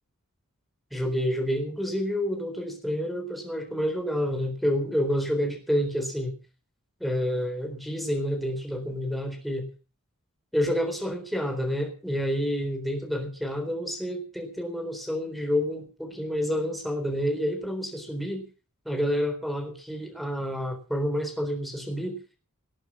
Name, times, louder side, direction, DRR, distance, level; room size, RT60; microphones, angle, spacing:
voice 1, 0.9-6.3 7.0-9.7 10.5-18.4 18.9-22.2, equal, ahead, 4 dB, 4.0 m, -29 dB
19.0 x 9.4 x 6.3 m, 0.37 s
head